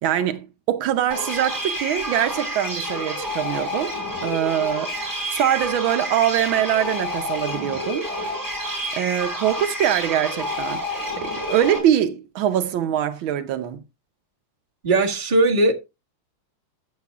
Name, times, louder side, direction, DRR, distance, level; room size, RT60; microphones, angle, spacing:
voice 1, 0.0-3.9 4.2-5.0 5.3-8.1 9.0-10.8 11.2-13.8, right 10 dB, 80° right, 1.5 m, -23 dB
sound 1, 1.1-11.8, left 1 dB, 10° right, 4.4 m, -29 dB
voice 2, 14.8-15.7, right 2 dB, 25° right, 1.7 m, -18 dB
14.0 x 7.3 x 2.4 m
omnidirectional pair, 2.2 m